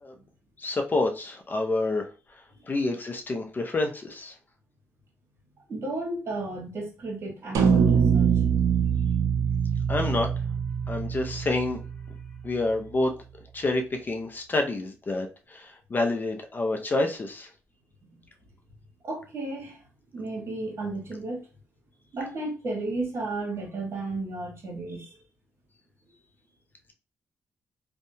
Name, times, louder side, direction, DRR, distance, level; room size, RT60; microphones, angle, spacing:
voice 1, 0.6-2.1 2.7-4.3 9.9-10.3 10.9-11.8 12.4-13.1 13.5-17.5, left 2 dB, 35° left, 0.5 m, -28 dB
voice 2, 5.7-8.3 18.1-18.2 19.0-19.8 20.1-21.4 22.1-25.1, right 2 dB, 50° right, 1.2 m, -33 dB
sound 1, 7.5-12.0, right 7 dB, 75° right, 0.6 m, -23 dB
2.7 x 2.1 x 2.6 m
cardioid pair, 85°, 6 cm